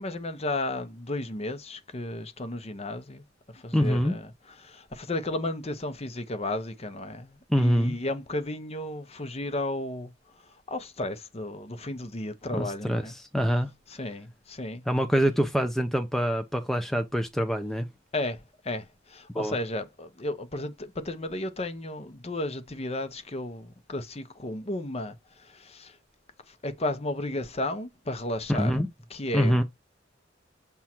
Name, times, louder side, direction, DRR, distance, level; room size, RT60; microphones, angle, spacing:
voice 1, 0.0-3.2 3.5-13.1 13.9-14.8 18.1-26.0 26.5-29.6, left 1 dB, 35° left, 0.9 m, -34 dB
voice 2, 3.7-4.1 7.5-7.9 12.6-13.0 13.3-13.7 14.9-17.9 19.3-19.6 28.5-28.9 29.3-29.6, equal, ahead, 0.7 m, -25 dB
7.2 x 3.6 x 4.4 m
head